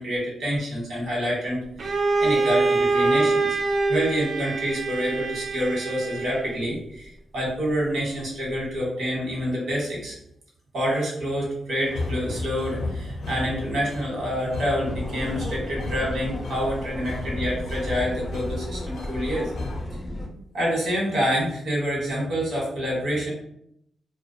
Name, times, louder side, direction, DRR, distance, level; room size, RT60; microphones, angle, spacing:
voice 1, 0.0-3.6 3.9-10.1 10.7-19.5 20.5-23.3, equal, 80° right, -3 dB, 1.2 m, -27 dB
Bowed string instrument, 1.8-6.6, right 3 dB, 50° right, 0.4 m, -24 dB
sound 1, 11.8-19.8, left 2 dB, 85° left, 0.5 m, -34 dB
sound 2, 14.8-20.3, left 1 dB, 20° left, 0.4 m, -34 dB
2.4 x 2.2 x 2.6 m, 0.73 s
wide cardioid pair, 150°, 0 cm